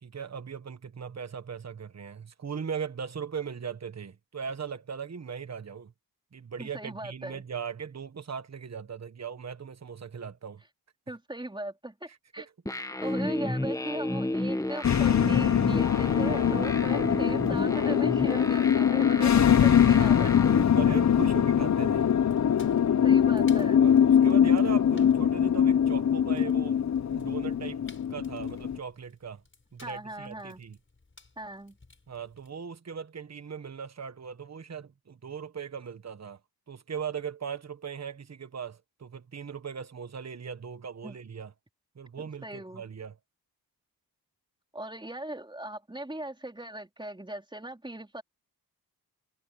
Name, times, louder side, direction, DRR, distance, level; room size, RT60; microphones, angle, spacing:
voice 1, 0.0-5.9 6.3-10.6 16.7-17.2 20.7-22.1 23.8-26.8 27.1-27.8 28.1-29.4 29.7-30.8 32.1-36.4 36.7-41.5 41.9-43.2, right 6 dB, 45° right, 1.4 m, -39 dB
voice 2, 6.6-7.4 11.1-12.5 13.0-20.3 20.6-20.7 23.0-23.8 29.8-30.6 31.4-31.8 41.0-41.2 42.4-42.8 44.7-48.2, right 1 dB, 10° right, 4.3 m, -39 dB
sound 1, 12.7-20.6, left 1 dB, 10° left, 1.4 m, -32 dB
sound 2, 14.8-28.8, left 8 dB, 50° left, 0.8 m, -23 dB
Fire, 17.2-32.5, left 3 dB, 30° left, 6.9 m, -59 dB
cardioid pair, 80°, 38 cm